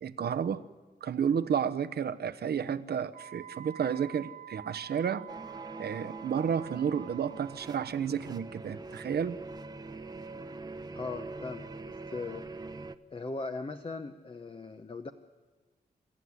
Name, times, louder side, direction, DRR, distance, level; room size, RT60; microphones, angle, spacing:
voice 1, 0.0-0.7 1.0-5.3 5.8-9.4, right 7 dB, 80° right, 0.9 m, -31 dB
Wind instrument woodwind instrument, 3.1-7.9, right 10 dB, 50° right, 0.8 m, -48 dB
sound 1, 5.3-13.0, right 3 dB, 25° right, 0.9 m, -44 dB
voice 2, 10.9-12.5 13.1-15.1, left 3 dB, 35° left, 1.0 m, -39 dB
29.5 x 14.5 x 9.6 m
wide cardioid pair, 120°, 16 cm